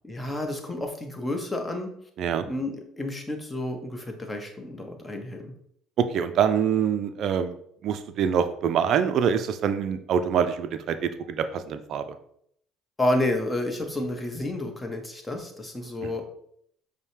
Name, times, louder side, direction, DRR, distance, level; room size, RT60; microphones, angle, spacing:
voice 1, 0.0-1.9 2.4-5.5 13.0-16.2, left 1 dB, 15° left, 4 dB, 0.8 m, -30 dB
voice 2, 6.0-7.6 7.8-12.1 16.0-16.2, right 8 dB, 60° right, 9 dB, 0.4 m, -25 dB
5.3 x 2.1 x 3.2 m, 0.70 s
supercardioid pair, 75°, 0 cm